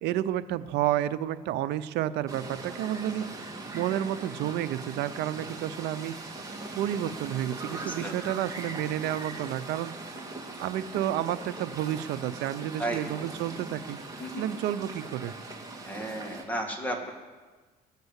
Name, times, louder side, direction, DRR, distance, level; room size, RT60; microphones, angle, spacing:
voice 1, 0.0-3.3 3.7-6.1 6.8-9.9 10.6-14.0 14.4-15.3, right 12 dB, 85° right, 14 dB, 0.7 m, -30 dB
sound 1, 2.3-16.4, right 2 dB, 20° right, 2.2 m, -40 dB
voice 2, 7.6-8.1 12.8-13.0 14.2-14.5 15.8-17.1, right 1 dB, 10° left, 1 dB, 2.2 m, -34 dB
19.0 x 6.8 x 8.1 m, 1.4 s
cardioid pair, 110°, 17 cm